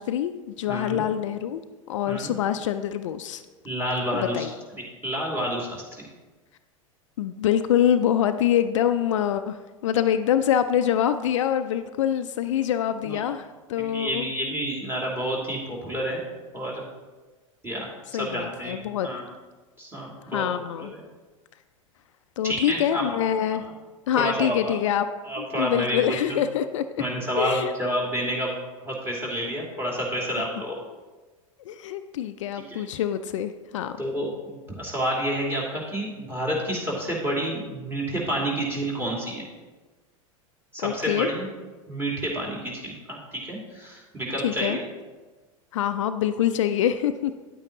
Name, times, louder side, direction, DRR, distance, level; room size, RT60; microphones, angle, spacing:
voice 1, 0.0-1.6 1.9-3.4 4.1-4.5 7.2-14.3 18.1-19.1 20.3-20.9 22.4-23.6 24.1-25.1 25.4-26.9 27.4-27.7 31.7-33.9 40.8-41.3 44.4-44.8 45.7-47.3, left 10 dB, 65° left, 10 dB, 0.4 m, -25 dB
voice 2, 0.7-1.0 2.1-2.4 3.6-4.5 5.0-6.1 13.0-13.2 13.8-16.2 16.5-16.8 17.6-18.7 19.0-19.2 19.8-20.4 20.9-21.0 22.4-23.0 24.2-24.8 25.2-26.4 27.0-28.5 28.8-30.8 32.7-32.8 34.0-39.4 40.7-41.5 41.9-44.8, right 1 dB, 15° right, -3 dB, 2.7 m, -29 dB
9.8 x 8.8 x 2.9 m, 1.3 s
figure-of-eight pair, 85°, 17 cm